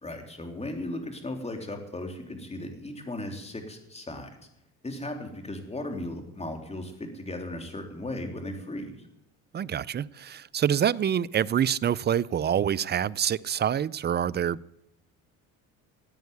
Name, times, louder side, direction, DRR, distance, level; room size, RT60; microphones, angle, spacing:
voice 1, 0.0-4.3 4.8-8.9, left 1 dB, 20° left, 4 dB, 3.4 m, -36 dB
voice 2, 9.5-14.6, right 9 dB, 30° right, 21 dB, 0.5 m, -26 dB
15.0 x 9.2 x 9.4 m, 0.79 s
cardioid pair, 95°, 35 cm